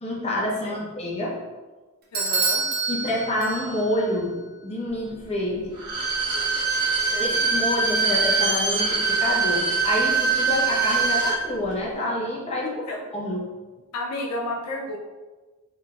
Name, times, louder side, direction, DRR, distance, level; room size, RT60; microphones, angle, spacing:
voice 1, 0.0-1.4 2.9-5.8 7.2-12.8 13.1-13.4, left 1 dB, 30° left, -4 dB, 0.8 m, -27 dB
voice 2, 2.1-2.7 7.0-7.4 12.6-13.0 13.9-15.0, left 1 dB, 90° left, 1 dB, 0.5 m, -32 dB
Bell / Doorbell, 2.1-4.0, right 4 dB, 45° right, 0.6 m, -27 dB
Bowed string instrument, 5.7-11.4 11.7-11.8, right 4 dB, 70° right, 1.0 m, -23 dB
3.8 x 3.3 x 2.4 m, 1.3 s
head